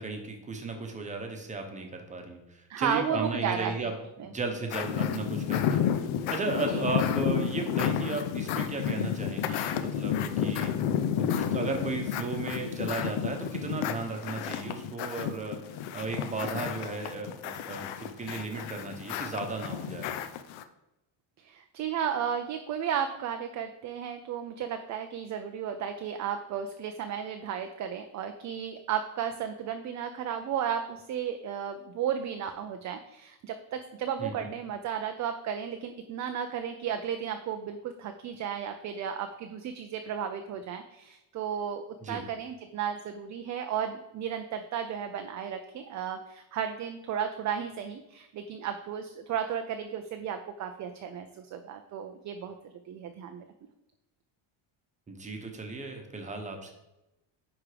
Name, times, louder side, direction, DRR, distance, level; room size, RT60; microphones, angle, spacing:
voice 1, 0.0-10.7 11.2-15.6 15.9-20.1 34.2-34.5 42.0-42.2 55.1-56.7, right 3 dB, 15° right, 3 dB, 0.9 m, -35 dB
voice 2, 2.7-3.9 4.2-4.3 6.7-7.0 21.4-52.5 52.9-53.4, right 8 dB, 40° right, 6 dB, 0.4 m, -34 dB
sound 1, 4.7-20.6, left 8 dB, 70° left, 0.7 m, -31 dB
9.6 x 3.6 x 5.0 m, 0.92 s
cardioid pair, 170°, 49 cm